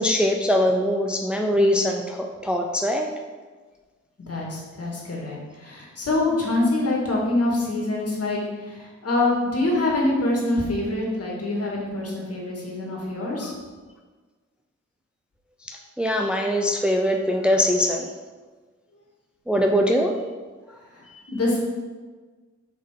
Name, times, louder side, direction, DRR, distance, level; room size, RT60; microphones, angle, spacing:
voice 1, 0.0-3.1 13.4-13.5 15.7-18.1 19.5-20.2 21.1-21.2, equal, 5° right, 2 dB, 0.5 m, -22 dB
voice 2, 4.3-13.5 20.9-21.6, left 2 dB, 50° left, -3 dB, 2.0 m, -25 dB
5.5 x 5.3 x 3.7 m, 1.4 s
cardioid pair, 65°, 30 cm